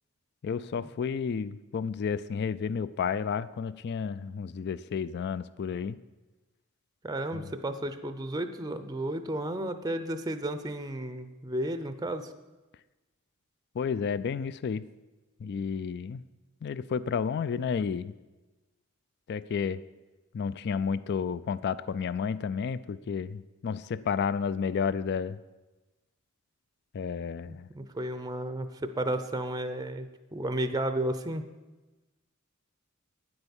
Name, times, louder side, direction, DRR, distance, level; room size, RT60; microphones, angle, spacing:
voice 1, 0.4-6.0 7.3-7.4 13.8-14.8 15.4-16.2 16.6-18.1 19.3-19.8 20.3-25.4 26.9-27.7, left 6 dB, 50° left, 16 dB, 0.3 m, -31 dB
voice 2, 7.0-12.3 27.5-31.5, right 1 dB, 20° right, 10 dB, 0.6 m, -33 dB
9.8 x 7.9 x 7.1 m, 1.1 s
head